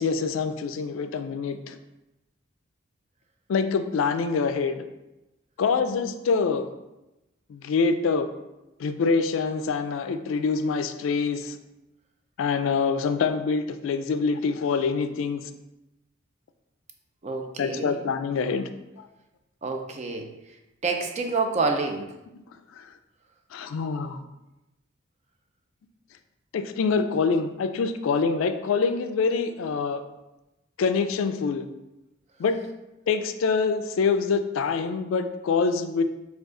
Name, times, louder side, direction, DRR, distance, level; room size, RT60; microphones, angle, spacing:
voice 1, 0.0-1.8 3.5-4.8 5.6-6.7 7.5-8.3 8.8-11.6 12.4-15.4 17.6-18.7 19.0-19.1 22.7-22.9 23.5-24.2 26.5-30.0 30.8-31.6 32.4-32.6 33.1-36.0, left 5 dB, 75° left, 9 dB, 0.3 m, -25 dB
voice 2, 17.2-17.9 19.6-20.3 20.8-22.1, right 4 dB, 35° right, 4 dB, 0.4 m, -27 dB
4.9 x 2.3 x 3.7 m, 0.97 s
head